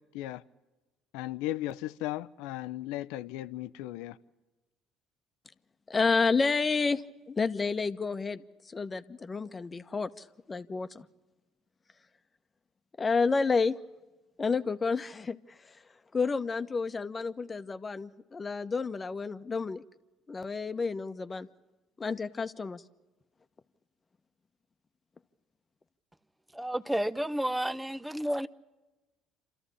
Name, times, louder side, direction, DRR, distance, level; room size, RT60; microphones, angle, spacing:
voice 1, 1.1-4.2, left 15 dB, 80° left, 0.7 m, -36 dB
voice 2, 5.9-7.0 7.3-11.0 13.0-13.7 14.4-15.7 16.1-19.8 20.3-21.5 22.0-22.8, left 4 dB, 30° left, 1.1 m, -30 dB
voice 3, 26.5-28.5, right 1 dB, 5° right, 0.9 m, -31 dB
27.5 x 14.0 x 10.0 m
hypercardioid pair, 65°, 0 cm